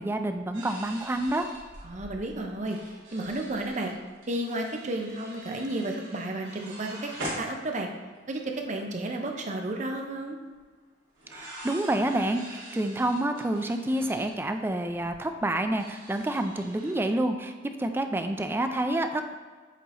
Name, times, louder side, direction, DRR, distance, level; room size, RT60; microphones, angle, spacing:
voice 1, 0.0-1.5 11.3-19.3, right 1 dB, 10° right, 7 dB, 0.3 m, -28 dB
sound 1, 0.5-8.2 8.4-8.5 8.7-9.1 10.5-10.6 11.2-16.9, right 1 dB, 80° right, 1.7 m, -44 dB
voice 2, 1.8-3.9 4.3-7.1 7.4-7.9 8.3-10.4, right 1 dB, 40° right, 2 dB, 0.7 m, -32 dB
8.2 x 2.9 x 4.1 m, 1.5 s
head